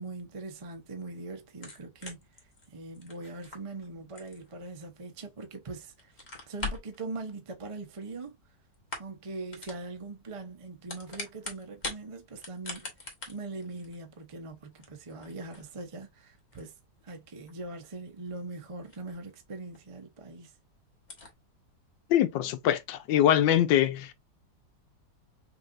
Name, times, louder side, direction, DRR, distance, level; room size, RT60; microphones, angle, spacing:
voice 1, 0.0-2.2 2.7-6.1 6.5-8.4 9.0-16.7 17.0-20.5, right 3 dB, 35° right, 0.5 m, -41 dB
sound 1, 1.5-5.5 5.9-7.0 8.0-8.5 8.7-9.2 9.5-9.8 10.6-12.0 12.3-19.4 19.7-19.8 20.3-20.4 20.6-20.7 21.0-21.3, left 3 dB, 30° left, 1.2 m, -43 dB
voice 2, 22.1-24.1, left 11 dB, 85° left, 1.3 m, -23 dB
5.5 x 2.8 x 2.5 m
omnidirectional pair, 2.0 m